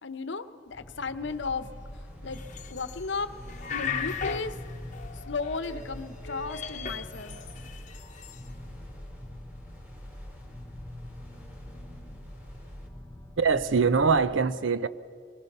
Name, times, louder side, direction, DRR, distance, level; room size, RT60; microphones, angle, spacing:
voice 1, 0.0-1.7 2.2-2.4 2.7-3.3 3.7-4.5 5.3-7.4, left 4 dB, 65° left, 0.9 m, -34 dB
sound 1, 0.7-14.4, left 1 dB, 10° left, 2.8 m, -45 dB
sound 2, 1.3-12.9, equal, 10° right, 3.3 m, -48 dB
sound 3, 2.3-3.1 3.4-6.0 6.2-8.4, left 6 dB, 40° left, 1.1 m, -37 dB
voice 2, 13.4-14.9, right 5 dB, 80° right, 0.7 m, -23 dB
24.0 x 20.0 x 6.7 m
head